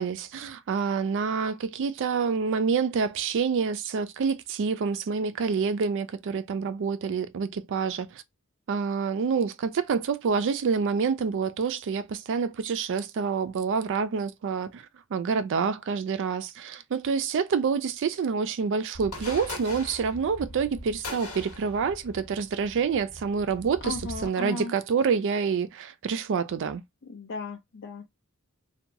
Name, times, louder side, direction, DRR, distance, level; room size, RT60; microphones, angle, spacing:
voice 1, 0.0-8.2 8.7-14.8 15.1-24.0 24.2-26.8, right 5 dB, 55° right, 0.4 m, -27 dB
sound 1, 18.9-24.3, left 2 dB, 75° left, 1.1 m, -41 dB
voice 2, 23.8-24.7 27.1-28.2, left 3 dB, 55° left, 0.5 m, -36 dB
2.8 x 2.2 x 2.5 m
head